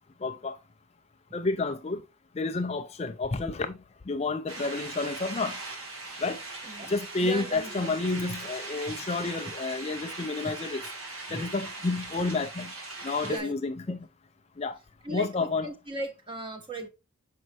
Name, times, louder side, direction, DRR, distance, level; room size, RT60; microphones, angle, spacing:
voice 1, 0.2-0.6 1.3-2.0 2.4-3.8 4.1-5.6 6.2-6.4 6.9-10.8 11.3-12.7 13.0-14.1 14.6-14.8 15.1-15.7, left 3 dB, 30° left, 0.4 m, -30 dB
sound 1, 4.5-13.4, right 3 dB, 80° right, 2.0 m, -40 dB
voice 2, 7.2-8.4 8.9-9.1 10.4-10.5 11.3-11.5 12.2-12.3 13.2-13.5 15.0-16.9, right 2 dB, 25° right, 1.1 m, -37 dB
6.5 x 5.2 x 2.9 m
head